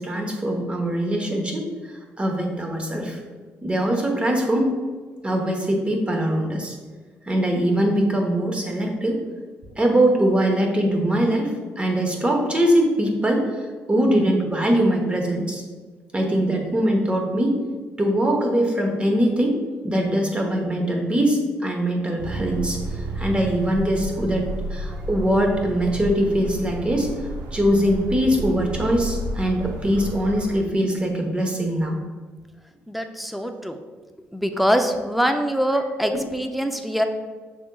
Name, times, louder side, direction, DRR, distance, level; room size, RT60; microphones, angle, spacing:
voice 1, 0.0-1.7 2.2-3.2 3.6-4.8 5.2-6.8 7.3-9.2 9.8-13.4 13.9-15.6 16.1-17.5 18.0-19.6 19.8-32.0 36.1-36.2, right 1 dB, 20° right, 2 dB, 1.0 m, -22 dB
sound 1, 22.2-30.6, right 1 dB, 85° right, 0.6 m, -32 dB
voice 2, 32.9-33.8 34.3-37.0, equal, ahead, 6 dB, 0.5 m, -23 dB
6.1 x 3.6 x 2.3 m, 1.4 s
supercardioid pair, 70°, 5 cm